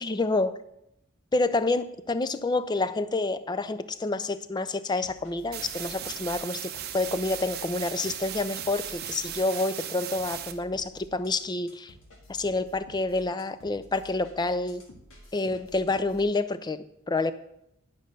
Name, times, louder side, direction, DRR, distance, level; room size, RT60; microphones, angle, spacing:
voice 1, 0.0-0.6 1.3-11.9 12.3-14.8 15.3-17.3, left 2 dB, 20° left, 13 dB, 0.4 m, -28 dB
sound 1, 5.0-16.3, left 1 dB, 70° left, 1.9 m, -52 dB
sound 2, 5.5-10.5, right 10 dB, 50° right, 0.8 m, -37 dB
10.0 x 5.3 x 6.6 m, 0.79 s
head